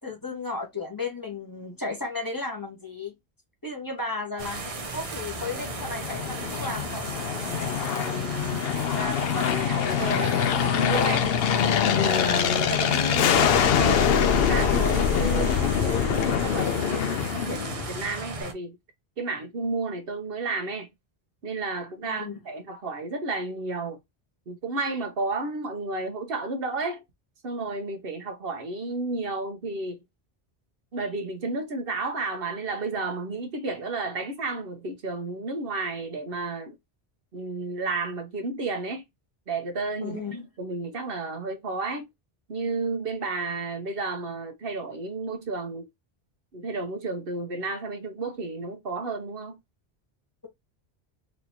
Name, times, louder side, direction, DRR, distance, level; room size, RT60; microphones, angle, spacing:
voice 1, 0.0-3.1 3.6-7.1 22.0-22.4 40.0-40.4, left 3 dB, 20° left, 1.3 m, -34 dB
sound 1, 4.4-18.5, right 3 dB, 40° right, 0.7 m, -36 dB
Aircraft, 5.4-18.1, left 8 dB, 70° left, 0.8 m, -24 dB
voice 2, 7.9-11.3 11.9-18.8 19.2-20.9 21.4-24.0 24.5-27.0 27.4-30.0 30.9-36.8 37.3-39.0 39.5-42.1 42.5-45.9 46.5-49.6, right 3 dB, 65° right, 1.0 m, -32 dB
4.1 x 2.8 x 2.7 m
omnidirectional pair, 1.1 m